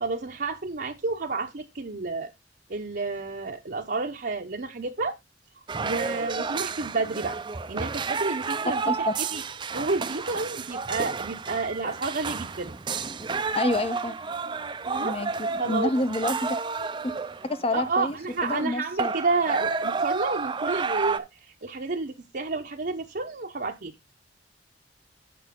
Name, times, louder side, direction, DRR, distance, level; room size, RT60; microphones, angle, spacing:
voice 1, 0.0-2.3 2.7-5.2 5.8-7.4 7.7-9.4 9.7-12.7 14.9-15.2 15.6-15.9 17.7-23.9, right 3 dB, 55° right, 0.8 m, -30 dB
sound 1, 5.7-18.7 19.0-21.2, right 5 dB, 25° right, 0.5 m, -31 dB
voice 2, 13.5-14.2 15.0-16.6 17.5-19.1, left 2 dB, 30° left, 0.7 m, -28 dB
8.5 x 6.5 x 3.7 m
head